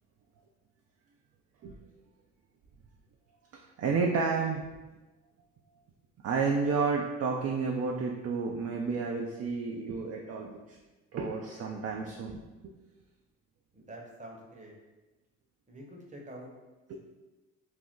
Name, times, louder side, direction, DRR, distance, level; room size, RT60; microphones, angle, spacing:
voice 1, 3.5-4.6 6.2-10.8 11.1-12.7 16.9-17.0, right 4 dB, 45° right, 0 dB, 0.4 m, -31 dB
voice 2, 13.7-14.7 15.7-16.5, right 1 dB, 20° right, -1 dB, 0.8 m, -46 dB
2.6 x 2.1 x 3.6 m, 1.1 s
supercardioid pair, 60°, 36 cm